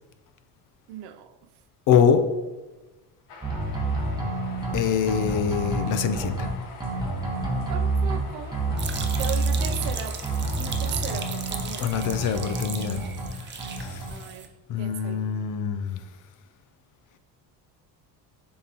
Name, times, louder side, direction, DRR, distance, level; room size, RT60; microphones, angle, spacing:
voice 1, 0.9-1.4 7.7-8.7 9.2-10.2 10.6-11.9 14.1-14.5 14.8-15.3, right 10 dB, 75° right, 0.6 m, -37 dB
voice 2, 1.9-2.3 4.7-6.5 11.8-13.0 13.8-14.0 14.7-16.0, left 7 dB, 50° left, 0.6 m, -24 dB
sound 1, 3.3-11.9, left 3 dB, 70° left, 1.2 m, -45 dB
sound 2, 3.4-4.7 5.1-6.5 6.8-8.2 8.5-9.9 10.2-11.6 11.9-13.3 13.6-14.1, right 2 dB, 10° right, 1.2 m, -28 dB
sound 3, 8.8-14.5, right 6 dB, 30° right, 0.5 m, -37 dB
9.9 x 3.8 x 2.9 m
cardioid pair, 135°, 40 cm